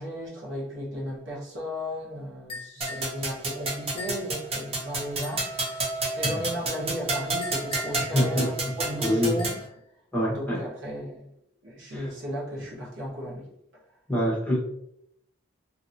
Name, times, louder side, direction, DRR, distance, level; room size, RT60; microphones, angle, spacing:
voice 1, 0.0-5.9 6.1-9.6 10.3-11.3 11.6-13.4, equal, 80° right, -5 dB, 1.1 m, -35 dB
sound 1, 2.5-3.2 4.0-4.3 5.2-5.9 7.4-8.1 9.0-9.7, left 3 dB, 30° left, 0.5 m, -41 dB
sound 2, 2.8-9.6, right 2 dB, 30° right, 0.6 m, -31 dB
voice 2, 8.1-8.7 9.0-9.4 10.1-10.6 11.9-12.1 14.1-14.6, equal, 10° left, -5 dB, 0.9 m, -25 dB
2.9 x 2.6 x 2.6 m, 0.74 s
head